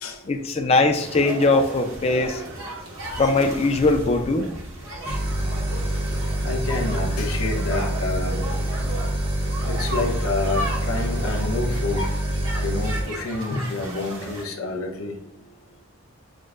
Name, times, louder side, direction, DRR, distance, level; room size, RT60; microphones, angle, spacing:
voice 1, 0.3-2.4 3.2-4.5, left 3 dB, 30° left, 6 dB, 0.3 m, -20 dB
sound 1, 1.0-14.4, right 1 dB, 75° right, 1.0 m, -35 dB
sound 2, 5.0-13.0, right 1 dB, 50° right, 0.9 m, -26 dB
voice 2, 6.4-8.8 9.7-12.1 12.6-15.2, left 3 dB, 85° left, 3 dB, 0.8 m, -28 dB
6.3 x 2.1 x 2.4 m, 0.87 s
head